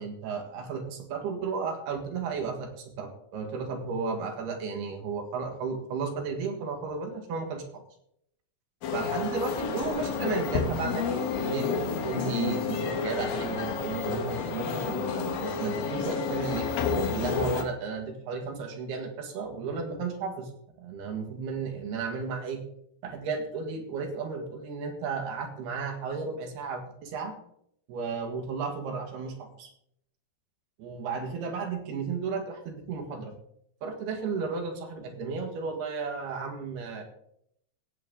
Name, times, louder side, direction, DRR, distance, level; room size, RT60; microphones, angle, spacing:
voice 1, 0.0-7.8 8.9-16.7 17.1-20.5 20.8-22.6 23.0-27.3 27.9-29.7 30.8-33.3 33.8-37.0, right 5 dB, 70° right, 3 dB, 3.7 m, -34 dB
sound 1, 8.8-17.6, left 5 dB, 65° left, 2.8 m, -30 dB
17.5 x 8.7 x 3.8 m, 0.70 s
omnidirectional pair, 4.8 m